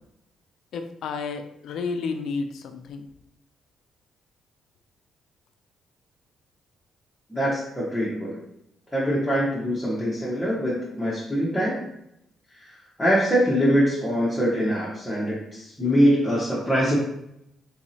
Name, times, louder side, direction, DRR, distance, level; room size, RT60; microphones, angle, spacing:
voice 1, 0.7-3.0, left 4 dB, 75° left, 7 dB, 0.4 m, -31 dB
voice 2, 7.3-8.4 8.9-11.8 13.0-17.0, equal, 5° left, -8 dB, 1.0 m, -23 dB
3.8 x 2.9 x 2.7 m, 0.79 s
cardioid pair, 90°, 0 cm